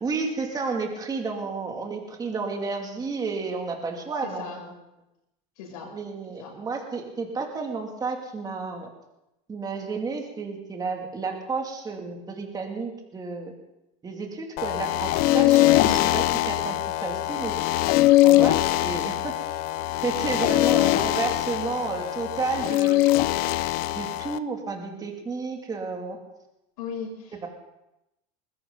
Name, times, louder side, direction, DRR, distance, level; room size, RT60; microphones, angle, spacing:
voice 1, 0.0-4.7 5.9-8.9 9.5-13.5 14.0-17.5 18.2-19.6 20.0-23.0 23.9-26.2 27.4-27.5, right 4 dB, 20° right, 2 dB, 2.6 m, -32 dB
voice 2, 4.2-4.6 5.6-5.9 6.4-6.5 15.8-16.1 20.7-21.0 26.8-27.5, left 6 dB, 85° left, -1 dB, 7.4 m, -35 dB
sound 1, 14.6-24.4, left 16 dB, 55° left, 0.6 m, -22 dB
20.5 x 16.0 x 4.0 m, 0.89 s
supercardioid pair, 130°, 19 cm